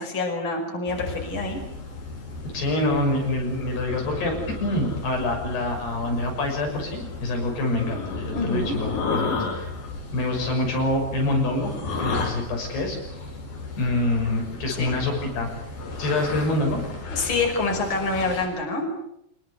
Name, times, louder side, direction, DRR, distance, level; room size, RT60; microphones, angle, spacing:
voice 1, 0.0-1.6 8.3-8.7 14.7-14.9 17.1-18.9, left 3 dB, 30° left, 2 dB, 6.2 m, -26 dB
sound 1, 0.9-18.5, left 3 dB, 60° left, 6.5 m, -34 dB
voice 2, 2.5-9.7 10.1-11.7 12.0-13.0 13.8-15.5 16.0-16.8, left 2 dB, 80° left, 1 dB, 8.5 m, -26 dB
26.0 x 22.0 x 8.2 m, 0.77 s
omnidirectional pair, 4.7 m